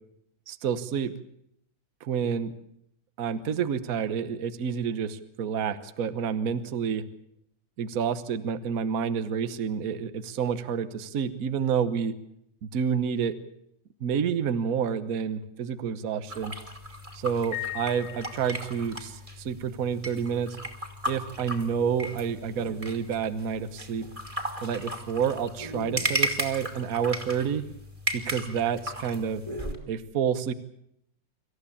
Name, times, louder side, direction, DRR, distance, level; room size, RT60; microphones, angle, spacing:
voice 1, 0.5-1.1 2.0-2.5 3.2-7.0 7.8-12.1 12.6-13.3 14.0-16.5 17.1-20.6 21.1-24.1 24.6-27.6 28.1-29.4 29.9-30.5, right 7 dB, 55° right, 12 dB, 1.4 m, -29 dB
sound 1, 16.3-29.8, right 1 dB, 15° right, 2.8 m, -35 dB
Piano, 17.5-19.0, left 14 dB, 45° left, 1.7 m, -38 dB
26.0 x 15.0 x 8.6 m, 0.75 s
omnidirectional pair, 2.0 m